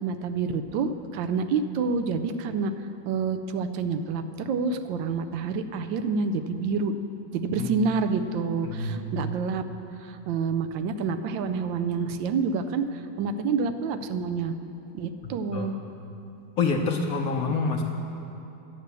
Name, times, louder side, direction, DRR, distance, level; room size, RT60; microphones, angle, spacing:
voice 1, 0.0-2.7 3.1-6.9 7.3-9.6 10.0-12.8 13.2-14.5 14.9-15.7, right 5 dB, 80° right, 9 dB, 1.3 m, -28 dB
voice 2, 7.6-7.9 8.6-9.3 15.5-15.7 16.6-17.8, left 4 dB, 60° left, 1 dB, 1.1 m, -27 dB
10.5 x 6.8 x 8.1 m, 2.9 s
omnidirectional pair, 2.0 m